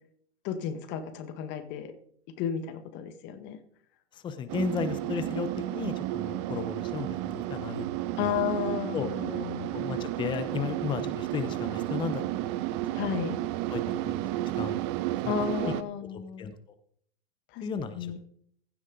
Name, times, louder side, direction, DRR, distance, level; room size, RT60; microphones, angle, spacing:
voice 1, 0.4-1.9 2.4-3.6 8.2-9.7 12.9-13.4 15.3-16.5 17.5-17.6 17.9-18.2, left 9 dB, 35° left, 11 dB, 1.3 m, -33 dB
voice 2, 4.1-7.9 8.2-8.4 8.9-9.1 9.7-12.2 13.7-14.2 14.5-14.8 15.2-15.3 15.6-15.7 16.1-16.6 17.6-18.2, left 6 dB, 15° left, 11 dB, 0.7 m, -34 dB
sound 1, 4.5-15.8, right 15 dB, 30° right, 0.4 m, -32 dB
15.5 x 7.4 x 3.8 m, 0.66 s
hypercardioid pair, 120°, 33 cm